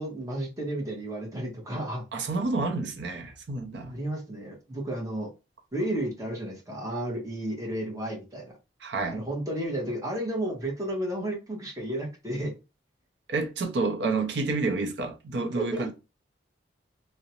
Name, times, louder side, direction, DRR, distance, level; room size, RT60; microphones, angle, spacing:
voice 1, 0.0-2.1 3.9-5.3 5.7-8.5 9.1-12.5 15.5-15.9, right 1 dB, 15° right, 0.8 m, -32 dB
voice 2, 2.1-4.0 8.8-9.2 13.3-15.9, right 3 dB, 65° right, 0.5 m, -29 dB
2.4 x 2.0 x 2.8 m
head